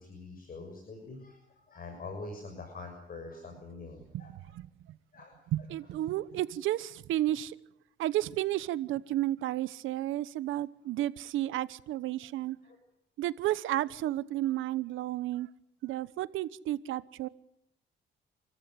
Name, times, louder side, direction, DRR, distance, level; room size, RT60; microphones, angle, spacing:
voice 1, 0.0-4.4 5.1-5.7 12.6-12.8, left 3 dB, 45° left, 6.8 m, -45 dB
voice 2, 5.5-7.5 8.0-12.6 13.2-15.5 15.8-17.3, right 14 dB, 85° right, 1.0 m, -32 dB
28.0 x 14.5 x 9.4 m
cardioid pair, 90°, 20 cm